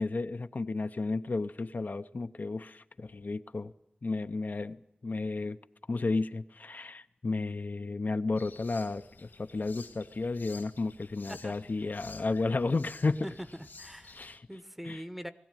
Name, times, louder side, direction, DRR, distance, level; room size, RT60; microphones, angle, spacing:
voice 1, 0.0-3.7 4.0-5.6 5.9-13.3 14.1-14.5 14.8-15.0, left 3 dB, 60° left, 9 dB, 0.7 m, -33 dB
sound 1, 8.4-14.4, left 4 dB, 75° left, 1.7 m, -52 dB
voice 2, 13.2-15.3, equal, 5° right, 11 dB, 1.0 m, -43 dB
20.5 x 16.0 x 9.1 m, 0.84 s
wide cardioid pair, 80°, 3 cm